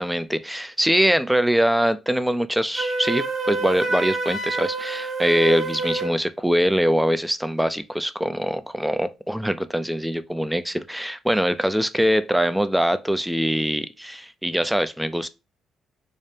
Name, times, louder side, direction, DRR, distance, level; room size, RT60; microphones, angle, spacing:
voice 1, 0.0-15.3, equal, 5° right, 0.4 m, -23 dB
Wind instrument woodwind instrument, 2.7-6.2, right 3 dB, 45° right, 1.2 m, -27 dB
4.9 x 2.1 x 2.7 m
cardioid pair, 90°, 0 cm